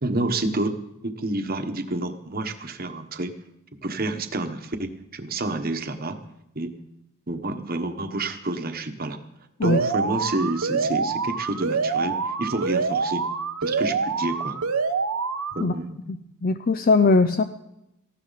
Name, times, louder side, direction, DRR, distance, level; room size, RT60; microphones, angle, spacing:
voice 1, 0.0-3.3 3.8-6.2 6.5-6.7 7.3-9.2 9.6-13.2 13.6-14.6 15.5-16.0, right 2 dB, 40° right, 7 dB, 1.2 m, -29 dB
Alarm, 9.6-15.6, right 5 dB, 85° right, 1.0 m, -26 dB
voice 2, 16.1-17.4, left 3 dB, 40° left, 9 dB, 0.5 m, -20 dB
18.5 x 15.5 x 4.1 m, 0.87 s
head